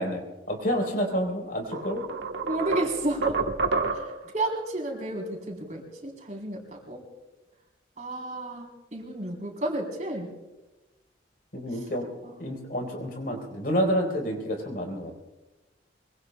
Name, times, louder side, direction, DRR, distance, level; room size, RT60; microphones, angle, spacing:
voice 1, 0.0-2.0 11.5-12.1 12.4-15.1, equal, 50° left, 1 dB, 3.9 m, -29 dB
sound 1, 1.1-1.2 1.7-4.3, right 4 dB, 75° right, 1.2 m, -29 dB
voice 2, 2.5-3.4 3.9-7.0 8.0-10.3 12.2-12.4, right 2 dB, 40° right, 0 dB, 3.8 m, -32 dB
24.5 x 24.0 x 2.3 m, 1.1 s
head